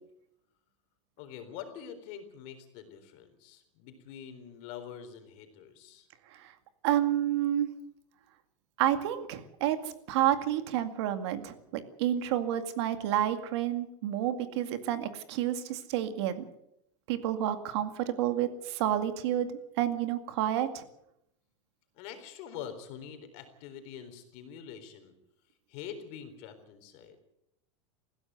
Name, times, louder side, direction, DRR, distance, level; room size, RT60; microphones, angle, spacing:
voice 1, 1.2-6.1 21.9-25.1 25.7-27.2, left 8 dB, 45° left, 8 dB, 4.0 m, -45 dB
voice 2, 6.8-7.7 8.8-9.8 10.1-16.5 17.1-19.5 19.8-20.8, right 11 dB, 60° right, 9 dB, 2.2 m, -29 dB
20.5 x 16.0 x 8.2 m, 0.78 s
supercardioid pair, 165°, 16 cm